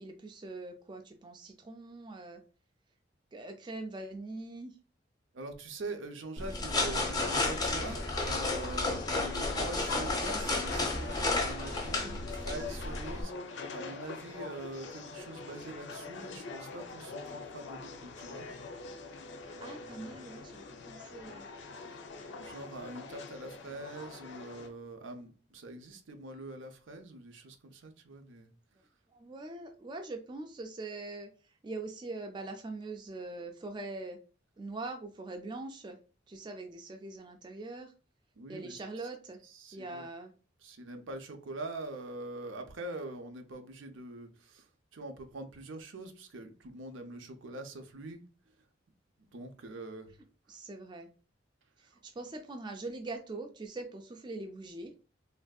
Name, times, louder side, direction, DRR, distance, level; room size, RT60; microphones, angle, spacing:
voice 1, 0.0-2.4 3.3-4.8 19.4-21.5 29.1-31.3 31.6-34.2 34.6-36.0 36.3-37.9 38.5-39.4 39.7-40.3 50.5-51.1 51.8-54.9, right 2 dB, 25° right, 0.3 m, -42 dB
voice 2, 5.3-18.5 19.5-20.1 21.9-22.0 22.4-28.5 38.4-38.8 39.5-40.1 40.6-44.7 44.9-48.2 49.2-50.1, right 2 dB, 80° right, 0.6 m, -44 dB
sound 1, 6.4-13.2, left 2 dB, 20° left, 0.6 m, -32 dB
sound 2, 6.8-24.7, left 4 dB, 65° left, 0.5 m, -44 dB
3.3 x 2.6 x 2.3 m
head